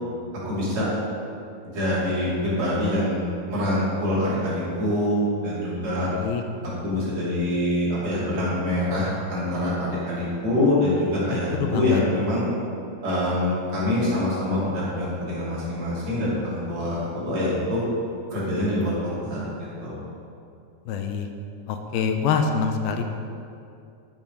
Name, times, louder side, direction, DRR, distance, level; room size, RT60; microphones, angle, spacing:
voice 1, 0.5-0.9 1.6-6.1 6.6-12.4 13.0-17.0 17.3-17.8 18.3-19.4 19.8-20.0, left 1 dB, 45° right, -8 dB, 3.7 m, -25 dB
voice 2, 6.0-6.4 11.3-12.0 20.9-21.3 21.7-23.0, left 6 dB, 85° left, 5 dB, 2.5 m, -25 dB
11.0 x 7.2 x 5.4 m, 2.5 s
omnidirectional pair, 4.5 m